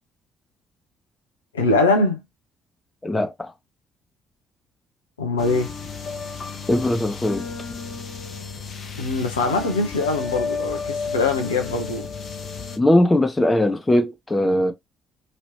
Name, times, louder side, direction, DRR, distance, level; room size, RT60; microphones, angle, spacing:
voice 1, 1.5-2.2 5.2-5.7 9.0-12.1, left 3 dB, 85° left, 0.7 m, -22 dB
voice 2, 3.0-3.5 6.7-7.4 12.8-14.7, left 1 dB, 20° left, 0.9 m, -20 dB
s piano to tape, 5.4-12.8, left 5 dB, 50° left, 0.9 m, -32 dB
3.1 x 2.9 x 2.7 m
figure-of-eight pair, 45°, 0 cm